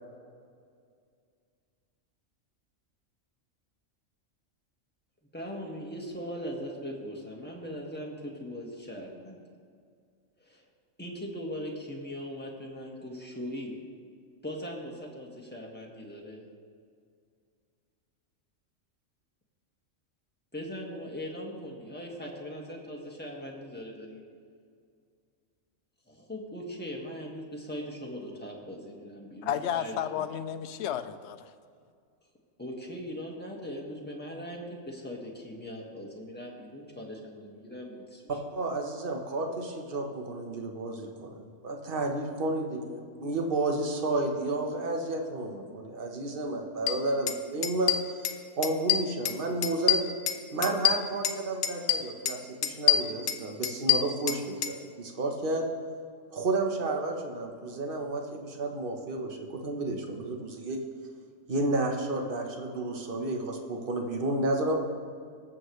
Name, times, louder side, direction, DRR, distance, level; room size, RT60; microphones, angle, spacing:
voice 1, 5.3-9.4 10.4-10.6 11.0-13.7 14.4-16.5 20.5-24.2 26.1-30.0 32.6-38.4, equal, 10° left, 1.7 m, -40 dB
voice 2, 29.4-31.5, left 9 dB, 65° left, 0.8 m, -32 dB
voice 3, 38.5-48.0 48.6-50.1 50.5-55.7 56.3-60.8 61.5-64.7, right 2 dB, 45° right, 1.3 m, -31 dB
sound 1, 46.9-47.0 47.3-47.4 47.6-48.4 48.6-49.4 49.6-51.4 51.6-52.4 52.6-54.7, left 11 dB, 80° left, 1.1 m, -26 dB
19.5 x 7.5 x 3.2 m
omnidirectional pair, 1.4 m